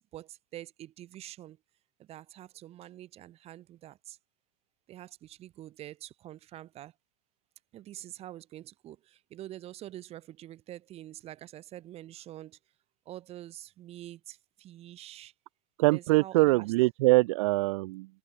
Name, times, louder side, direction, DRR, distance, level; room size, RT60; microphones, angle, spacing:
voice 1, 0.0-1.6 2.0-4.2 4.9-6.9 7.7-12.6 13.1-15.3 15.9-16.7, right 13 dB, 35° right, 7.7 m, -46 dB
voice 2, 15.8-18.1, right 23 dB, 65° right, 3.2 m, -23 dB
open air
supercardioid pair, 145°, 18 cm